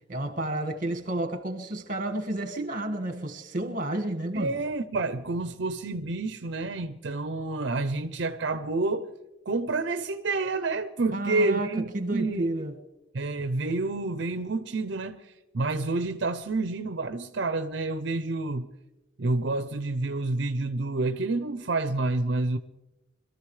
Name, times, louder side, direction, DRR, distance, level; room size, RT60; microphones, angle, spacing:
voice 1, 0.1-4.6 11.1-12.8, right 1 dB, 45° right, 1.7 m, -31 dB
voice 2, 4.3-9.1 9.5-12.7 13.1-18.7 19.2-22.6, right 3 dB, 60° right, 0.6 m, -29 dB
26.0 x 14.0 x 3.2 m
head